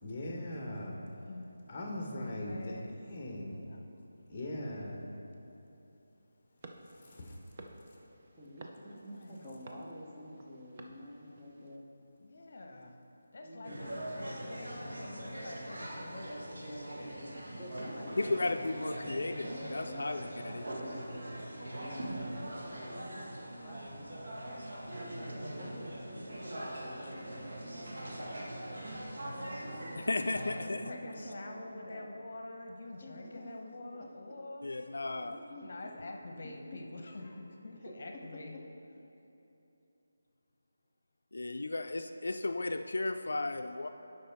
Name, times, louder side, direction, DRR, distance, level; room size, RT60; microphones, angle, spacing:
voice 1, 0.0-1.0 1.7-2.8 3.1-3.6 4.3-5.0 6.9-7.4, left 1 dB, 20° left, 0 dB, 1.1 m, -40 dB
voice 2, 2.1-2.9 3.5-3.9 8.9-9.5 12.2-13.0 13.3-17.5 17.8-19.1 23.6-23.7 26.0-26.2 30.2-34.7 35.6-38.6, left 2 dB, 50° left, 3 dB, 0.8 m, -47 dB
sound 1, 6.6-11.8, right 2 dB, 30° right, 0.5 m, -54 dB
voice 3, 8.3-11.9 13.4-13.9 17.6-18.9 19.4-24.0 24.9-28.9 29.4-30.1 30.7-32.2 32.9-34.1 35.0-35.7 36.0-36.1 36.7-36.8 37.9-38.4, equal, 10° right, -8 dB, 0.9 m, -49 dB
sound 2, 13.6-30.6, right 1 dB, 75° right, 1.5 m, -42 dB
voice 4, 18.2-20.6 30.0-30.8 34.6-35.4 41.3-43.9, left 2 dB, 75° left, 7 dB, 0.3 m, -34 dB
11.5 x 5.3 x 3.5 m, 3.0 s
figure-of-eight pair, 175°, 0 cm